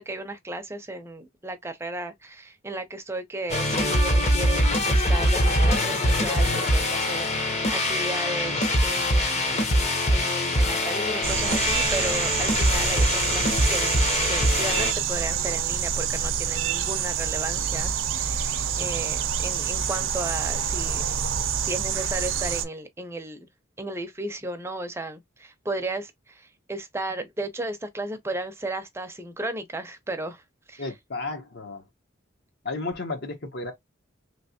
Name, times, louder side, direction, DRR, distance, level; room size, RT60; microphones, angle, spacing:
voice 1, 0.0-9.6 10.1-14.0 14.3-21.0 21.4-23.4 23.8-30.4 30.7-30.9, right 1 dB, 15° right, 0.5 m, -34 dB
sound 1, 3.5-14.9, left 1 dB, 35° left, 0.9 m, -23 dB
sound 2, 11.2-22.7, right 7 dB, 85° right, 0.6 m, -27 dB
voice 2, 30.8-31.8 32.6-33.7, left 3 dB, 55° left, 1.1 m, -33 dB
3.2 x 2.8 x 2.8 m
head